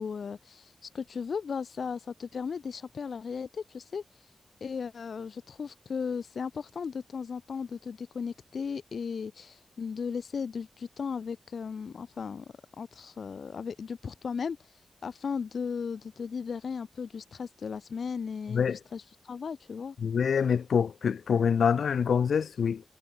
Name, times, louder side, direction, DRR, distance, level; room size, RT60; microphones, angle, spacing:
voice 1, 0.0-4.3 4.6-12.4 12.8-18.7 18.9-20.0, left 6 dB, 60° left, 1.2 m, -36 dB
voice 2, 20.0-22.8, left 7 dB, 85° left, 1.9 m, -25 dB
wide cardioid pair, 175°, 0 cm